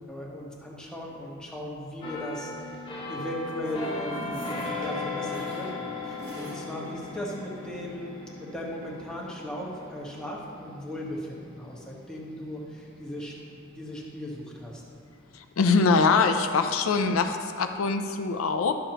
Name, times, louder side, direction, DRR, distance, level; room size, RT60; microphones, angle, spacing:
voice 1, 0.1-4.5 4.8-8.1 8.4-13.3 13.6-14.8, left 1 dB, 5° left, -5 dB, 1.2 m, -37 dB
sound 1, 2.0-13.6 14.0-14.2, left 3 dB, 25° left, 1.2 m, -38 dB
sound 2, 3.0-6.9 7.4-7.5 7.8-7.9, right 1 dB, 50° right, 1.2 m, -43 dB
sound 3, 4.7-13.3 13.7-13.8, equal, 20° right, 0.8 m, -50 dB
voice 2, 15.3-18.7, left 4 dB, 85° left, 6 dB, 0.5 m, -23 dB
12.0 x 6.7 x 2.9 m, 2.5 s
head